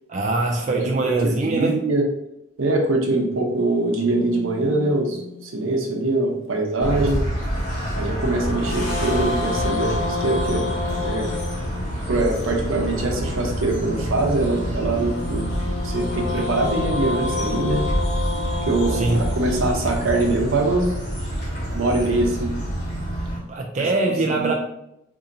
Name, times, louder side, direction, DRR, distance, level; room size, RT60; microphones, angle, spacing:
voice 1, 0.1-1.8 19.0-19.2 23.5-24.5, right 2 dB, 35° right, 1 dB, 0.3 m, -22 dB
voice 2, 0.7-2.1 2.6-7.2 7.9-10.7 11.0-11.3 12.1-15.5 15.8-17.8 18.7-20.9 21.7-22.5 23.8-23.9 24.3-24.5, right 2 dB, 80° right, 1 dB, 0.8 m, -23 dB
sound 1, 3.6-6.0 8.2-12.4 14.5-20.7, left 4 dB, 65° left, 0.6 m, -31 dB
sound 2, 6.8-23.4, equal, 40° left, 1.4 m, -27 dB
2.7 x 2.6 x 3.9 m, 0.82 s
head